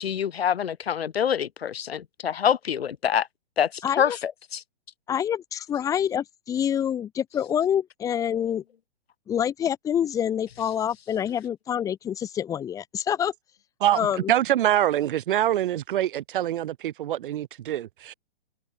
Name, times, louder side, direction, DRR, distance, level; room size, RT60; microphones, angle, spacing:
voice 1, 0.0-3.3 3.6-4.6, left 8 dB, 85° left, 1.5 m, -26 dB
voice 2, 3.8-4.2 5.1-8.6 9.3-13.3 13.9-14.3, left 9 dB, 10° left, 0.6 m, -27 dB
voice 3, 13.8-18.1, right 12 dB, 60° right, 1.6 m, -25 dB
hypercardioid pair, 140°, 30 cm